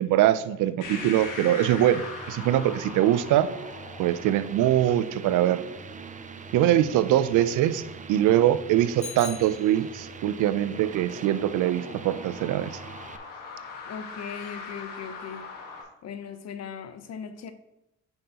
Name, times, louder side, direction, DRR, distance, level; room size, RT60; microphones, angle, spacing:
voice 1, 0.0-3.5 4.0-5.6 6.5-7.8 8.1-12.8, right 12 dB, 80° right, 14 dB, 0.5 m, -23 dB
sound 1, 0.8-15.8, left 4 dB, 85° left, 1.5 m, -43 dB
sound 2, 0.8-13.2, right 5 dB, 25° right, 0.5 m, -42 dB
Bicycle bell, 9.0-10.3, left 7 dB, 25° left, 0.5 m, -41 dB
voice 2, 13.9-15.5 16.0-17.5, left 7 dB, 55° left, 9 dB, 0.8 m, -38 dB
9.0 x 5.5 x 2.9 m, 0.88 s
cardioid pair, 90°, 30 cm